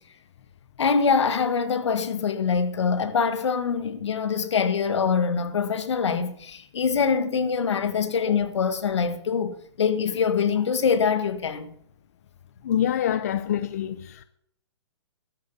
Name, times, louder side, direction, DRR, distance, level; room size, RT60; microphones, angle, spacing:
voice 1, 0.8-11.7, left 6 dB, 70° left, 1.7 m, -24 dB
voice 2, 12.6-14.2, left 10 dB, 35° left, 0.6 m, -26 dB
13.0 x 8.0 x 8.5 m
hypercardioid pair, 175°, 15 cm